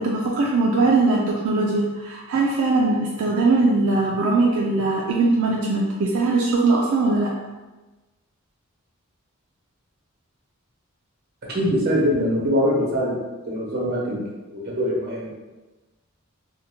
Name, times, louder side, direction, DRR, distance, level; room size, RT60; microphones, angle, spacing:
voice 1, 0.0-7.3, right 3 dB, 80° right, -3 dB, 0.3 m, -20 dB
voice 2, 11.5-13.1 13.5-14.2 14.5-15.3, equal, 50° right, -5 dB, 0.9 m, -23 dB
2.6 x 2.1 x 2.8 m, 1.2 s
head